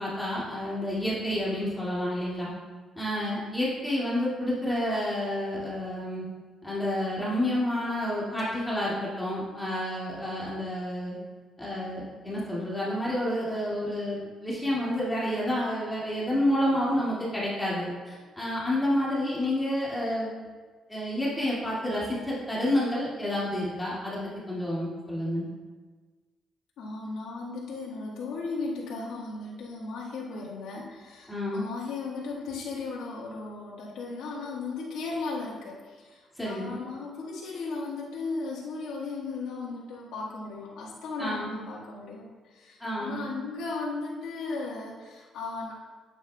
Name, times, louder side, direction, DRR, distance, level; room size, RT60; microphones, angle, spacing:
voice 1, 0.0-2.5 3.0-6.2 6.6-11.2 11.6-20.3 20.9-24.2 24.5-25.5 31.3-31.6 36.4-36.8 41.2-41.6 42.8-43.3, left 1 dB, 10° left, -7 dB, 2.1 m, -29 dB
voice 2, 26.8-45.7, left 3 dB, 85° left, -6 dB, 1.5 m, -36 dB
9.2 x 8.1 x 2.2 m, 1.4 s
cardioid pair, 90°, 0 cm